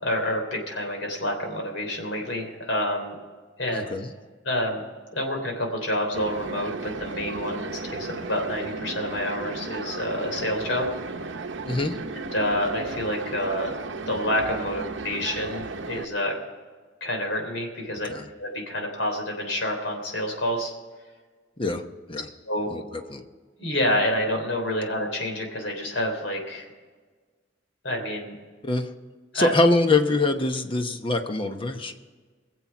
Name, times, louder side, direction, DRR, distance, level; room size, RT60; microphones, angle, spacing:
voice 1, 0.0-3.2 3.6-3.8 4.4-4.8 5.1-10.9 11.2-11.4 12.3-13.7 14.0-16.3 17.0-18.1 18.4-20.7 22.5-22.7 23.6-26.7 27.8-28.3 29.3-29.5, left 1 dB, 85° left, 2 dB, 3.4 m, -28 dB
voice 2, 3.7-4.1 11.7-12.0 18.1-18.2 21.6-21.8 22.1-22.3 22.7-22.8 23.1-23.2 28.6-28.9 29.3-31.9, left 2 dB, 30° left, 6 dB, 1.0 m, -24 dB
sound 1, 6.1-16.0, right 3 dB, 70° right, 0.8 m, -35 dB
22.0 x 7.6 x 6.0 m, 1.4 s
head